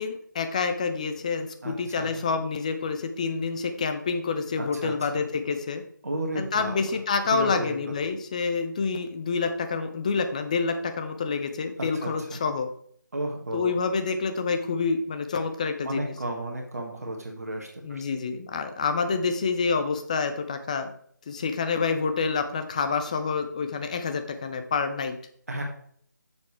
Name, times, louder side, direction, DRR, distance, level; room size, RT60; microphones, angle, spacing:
voice 1, 0.0-5.8 6.3-12.7 13.5-16.1 17.8-20.9 21.3-25.2, left 5 dB, 20° left, 8 dB, 0.7 m, -28 dB
voice 2, 1.6-2.2 4.6-5.2 6.0-6.8 7.2-7.8 11.9-12.4 13.1-13.8 15.8-18.0 25.5-25.6, right 1 dB, 55° right, 2 dB, 1.7 m, -33 dB
10.5 x 7.0 x 3.3 m, 0.63 s
figure-of-eight pair, 155°, 10 cm